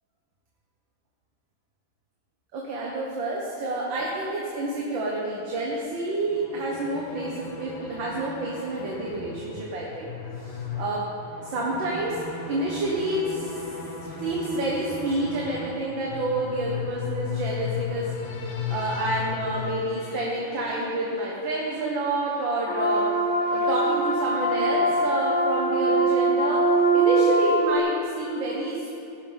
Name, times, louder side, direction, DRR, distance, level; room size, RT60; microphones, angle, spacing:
voice 1, 2.5-10.1 10.4-11.1 11.4-12.2 12.5-13.6 14.2-18.1 18.7-23.0 23.5-26.6 26.9-28.9, right 2 dB, 75° right, -4 dB, 2.0 m, -29 dB
sound 1, 6.1-25.1, left 6 dB, 90° left, 2.1 m, -37 dB
sound 2, 22.7-27.8, right 2 dB, 50° left, 0.8 m, -22 dB
17.5 x 10.5 x 3.5 m, 2.8 s
omnidirectional pair, 2.2 m